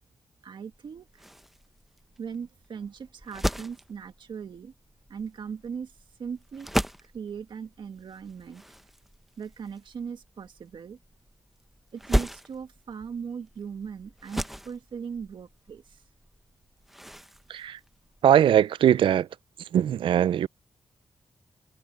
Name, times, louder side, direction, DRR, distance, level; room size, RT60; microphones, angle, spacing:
voice 1, 0.4-1.2 2.2-4.7 5.1-5.9 6.2-6.7 7.0-8.6 9.4-11.0 11.9-16.0, right 6 dB, 70° right, 1.8 m, -39 dB
sound 1, 0.7-18.7, equal, 5° right, 0.8 m, -36 dB
voice 2, 17.5-17.8 18.2-19.3 19.6-20.5, right 10 dB, 85° right, 0.4 m, -21 dB
cardioid pair, 100°, 9 cm